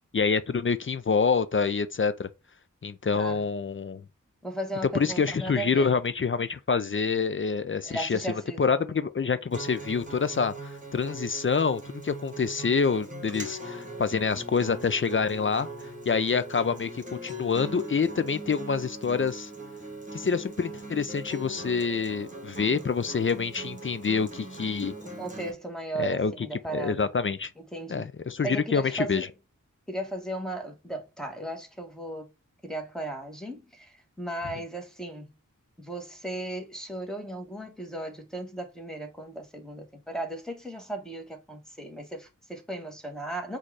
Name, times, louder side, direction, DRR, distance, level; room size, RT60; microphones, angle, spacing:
voice 1, 0.1-2.3 2.8-4.0 4.9-8.2 8.6-15.7 16.1-19.5 20.1-24.9 26.0-26.3 26.7-27.5 27.9-29.3, left 5 dB, 40° left, 0.4 m, -27 dB
voice 2, 3.1-3.4 4.4-6.0 7.8-8.9 25.0-27.1 27.6-28.1 28.4-29.3 29.9-32.3 32.6-35.4 35.8-43.6, right 1 dB, ahead, 1.2 m, -36 dB
Acoustic guitar, 9.5-25.5, right 1 dB, 25° right, 1.3 m, -40 dB
4.2 x 2.4 x 4.7 m
wide cardioid pair, 45°, 33 cm